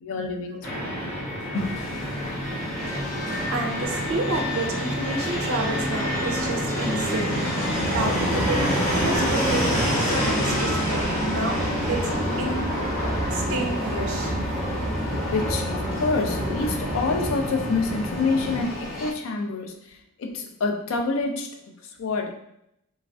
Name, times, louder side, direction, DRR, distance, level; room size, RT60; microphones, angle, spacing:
voice 1, 0.0-1.2 1.5-1.8 15.3-22.3, left 3 dB, 65° left, 4 dB, 0.4 m, -27 dB
Fixed-wing aircraft airplane, 0.6-18.6, equal, 10° left, 0.9 m, -27 dB
sound 1, 1.5-19.1, left 1 dB, 30° left, 1.1 m, -38 dB
voice 2, 3.5-12.8 13.3-14.3, right 2 dB, 70° right, 2 dB, 0.5 m, -30 dB
sound 2, 7.8-17.3, equal, 25° right, 0.6 m, -31 dB
3.0 x 2.4 x 2.3 m, 0.78 s
head